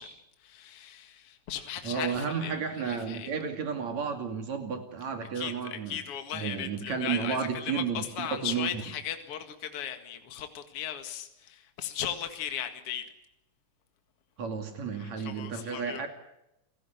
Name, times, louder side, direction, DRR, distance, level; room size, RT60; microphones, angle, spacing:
voice 1, 0.0-3.3 5.3-13.1 14.9-16.1, left 9 dB, 55° left, 7 dB, 2.7 m, -37 dB
voice 2, 1.8-6.0 6.3-8.8 14.4-16.1, right 6 dB, 70° right, 6 dB, 3.8 m, -32 dB
29.0 x 17.0 x 8.1 m, 0.89 s
omnidirectional pair, 3.3 m